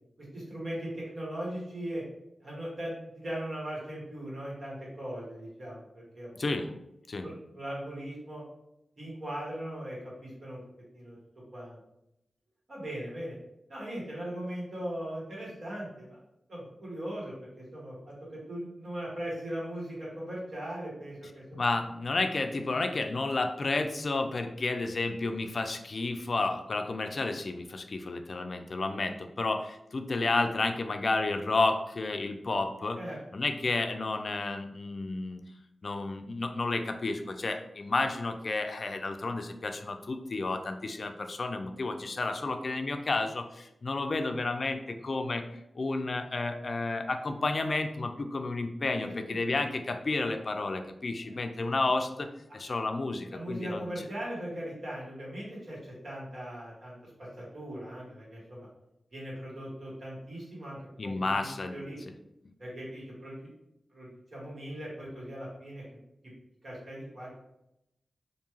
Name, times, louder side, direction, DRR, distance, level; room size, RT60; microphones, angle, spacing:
voice 1, 0.2-2.0 2.4-5.9 6.1-6.3 7.2-8.4 9.0-10.6 10.9-11.2 11.5-11.8 12.7-13.3 13.7-16.2 16.5-21.7 32.9-33.2 49.0-49.4 49.7-49.8 51.2-51.3 53.3-58.7 59.1-60.8 61.0-62.0 62.6-63.5 63.9-65.8 66.6-67.4, right 1 dB, 65° right, -6 dB, 1.4 m, -39 dB
voice 2, 6.4-6.7 7.1-7.3 21.5-33.0 33.3-35.4 35.8-52.3 52.5-53.9 61.0-61.8, left 3 dB, 60° left, 6 dB, 0.3 m, -31 dB
2.5 x 2.3 x 3.0 m, 0.84 s
cardioid pair, 40°, 0 cm